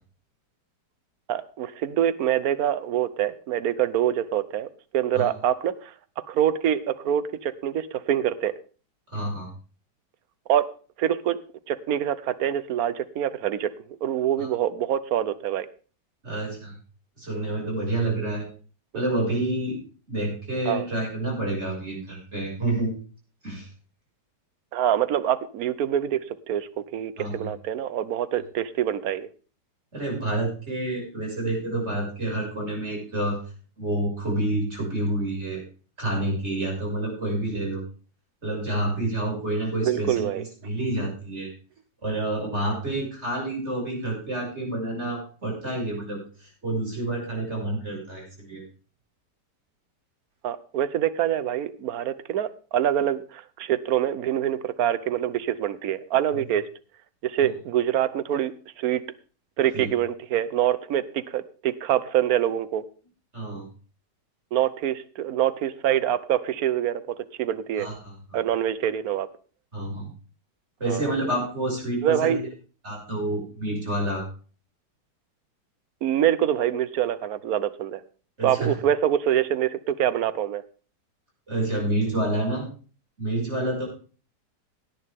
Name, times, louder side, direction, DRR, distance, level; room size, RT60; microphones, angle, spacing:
voice 1, 1.3-4.7 4.9-5.9 6.3-8.5 10.5-10.7 11.0-11.4 11.7-15.7 18.9-19.0 20.7-20.9 24.7-26.2 26.5-29.3 39.8-40.7 50.4-56.7 57.2-59.0 59.6-62.8 64.5-67.9 68.3-69.3 70.8-71.1 72.0-72.4 76.0-78.0 78.4-80.6, right 10 dB, 60° right, 15 dB, 1.2 m, -25 dB
voice 2, 9.1-9.5 14.4-14.5 16.2-16.7 17.2-18.5 18.9-19.8 20.1-22.9 23.4-23.7 27.2-27.5 29.9-33.4 33.8-35.6 36.0-37.8 38.4-41.5 42.0-48.6 57.4-57.5 59.7-59.9 63.3-63.7 67.8-68.4 69.7-70.1 70.8-72.5 72.8-74.3 78.4-78.7 81.5-82.7 83.2-83.9, right 1 dB, 35° right, -1 dB, 6.6 m, -28 dB
17.5 x 9.8 x 3.6 m, 0.38 s
omnidirectional pair, 1.9 m